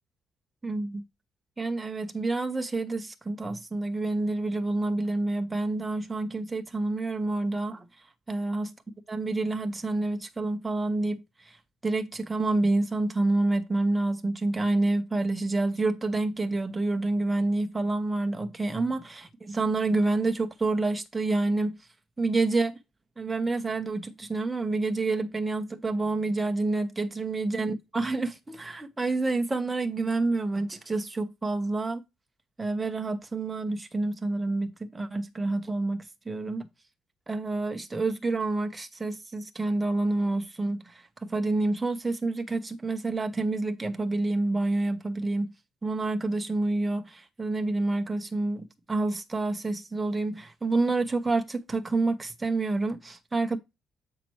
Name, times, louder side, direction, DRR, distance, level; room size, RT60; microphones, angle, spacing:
voice 1, 0.6-1.0 1.6-7.9 8.3-8.7 9.1-11.6 11.8-21.8 22.2-22.8 23.2-32.0 32.6-36.7 37.3-45.5 45.8-53.6, right 2 dB, 15° right, 1.1 m, -28 dB
7.6 x 5.8 x 3.1 m
cardioid pair, 115°, 0 cm